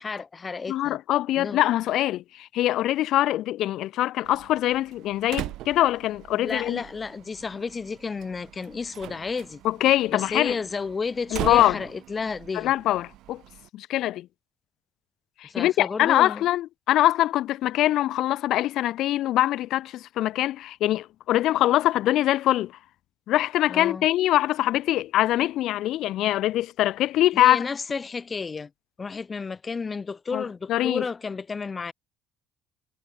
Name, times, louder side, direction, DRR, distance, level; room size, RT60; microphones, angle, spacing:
voice 1, 0.0-1.0 1.4-1.6 6.4-9.6 10.1-12.7 15.4-16.5 23.7-24.1 27.3-28.7 29.0-31.9, left 4 dB, 20° left, 0.9 m, -32 dB
voice 2, 0.7-2.2 2.5-6.8 9.6-10.6 11.3-11.8 12.5-13.4 13.7-14.3 15.4-22.7 23.3-27.6 30.3-30.4 30.7-31.0, left 14 dB, 55° left, 1.0 m, -23 dB
Slam, 4.2-13.7, right 16 dB, 65° right, 4.8 m, -40 dB
cardioid pair, 170°, 0 cm